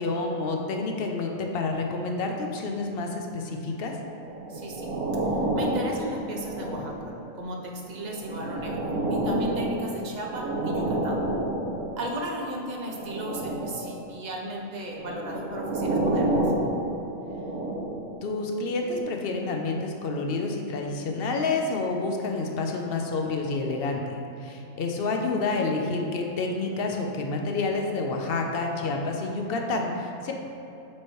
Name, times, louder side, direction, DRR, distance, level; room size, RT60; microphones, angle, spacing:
voice 1, 0.0-3.9 18.2-30.3, left 3 dB, 60° left, 2 dB, 0.7 m, -29 dB
sound 1, 4.1-7.2 7.9-12.1 12.8-14.0 14.8-18.1 18.8-19.0, right 1 dB, 85° right, 1.5 m, -29 dB
voice 2, 4.5-4.9 5.5-11.2 12.0-16.4, right 1 dB, 45° right, -1 dB, 0.6 m, -35 dB
7.3 x 3.1 x 4.6 m, 2.8 s
omnidirectional pair, 1.5 m